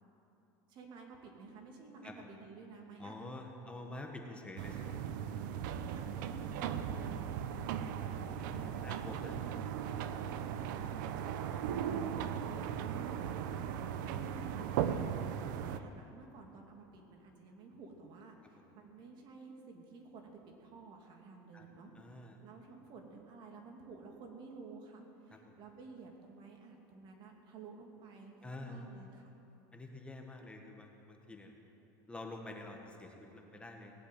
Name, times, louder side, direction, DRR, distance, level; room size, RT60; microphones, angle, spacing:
voice 1, 0.7-3.3 5.5-7.6 10.6-13.5 13.7-15.0 15.4-21.9 22.4-29.3, right 4 dB, 50° right, 2 dB, 2.6 m, -53 dB
voice 2, 3.0-5.4 7.8-9.6 21.5-21.6 21.9-22.4 25.3-25.5 28.4-28.9 29.7-31.5 32.1-33.9, left 2 dB, 10° left, 2 dB, 1.4 m, -48 dB
sound 1, 4.6-15.8, right 8 dB, 80° right, 0.8 m, -38 dB
18.0 x 7.9 x 9.1 m, 2.9 s
supercardioid pair, 130°, 10 cm